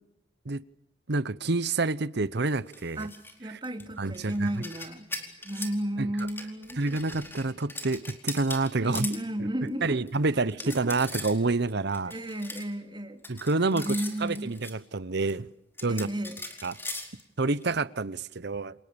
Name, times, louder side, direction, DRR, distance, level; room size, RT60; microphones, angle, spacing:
voice 1, 1.1-3.1 4.0-4.6 6.0-6.1 6.8-9.1 9.8-12.1 13.3-15.5 15.8-16.1 16.6-17.0 17.4-18.7, right 3 dB, 65° right, 1.0 m, -28 dB
sound 1, 2.7-3.3 3.6-5.8 6.2-9.2 9.7-9.8 10.1-10.2 10.5-11.4 11.7-12.7 13.2-14.7 15.3-15.4 15.8-17.6, left 2 dB, 10° left, 4.5 m, -40 dB
voice 2, 3.0-5.1 5.4-6.8 8.8-10.0 10.3-10.8 12.0-13.2 13.7-14.5 15.9-16.4, right 1 dB, 25° right, 3.1 m, -33 dB
29.5 x 27.5 x 7.1 m
head